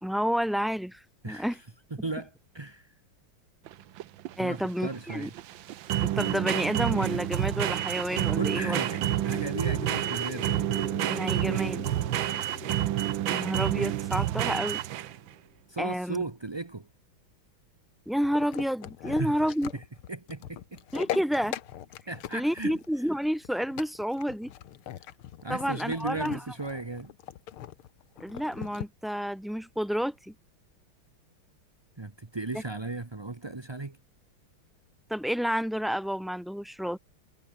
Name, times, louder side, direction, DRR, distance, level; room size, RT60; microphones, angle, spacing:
voice 1, 0.0-1.6 4.4-5.3 6.0-8.8 11.1-11.9 13.3-14.8 15.8-16.2 18.1-19.7 20.9-21.6 22.3-24.5 25.5-26.4 28.2-30.3 32.5-32.6 35.1-37.0, equal, ahead, 2.6 m, -30 dB
voice 2, 1.2-1.6 2.0-2.9 4.4-5.3 8.3-10.6 15.7-16.9 19.0-19.3 19.7-19.8 20.1-20.8 22.1-22.8 25.4-27.1 32.0-34.0, right 3 dB, 20° right, 0.7 m, -36 dB
sound 1, 3.7-15.3, right 13 dB, 70° right, 1.5 m, -29 dB
sound 2, 7.3-15.3, left 1 dB, 15° left, 0.4 m, -43 dB
sound 3, 18.2-28.9, left 11 dB, 80° left, 2.0 m, -40 dB
omnidirectional pair, 2.3 m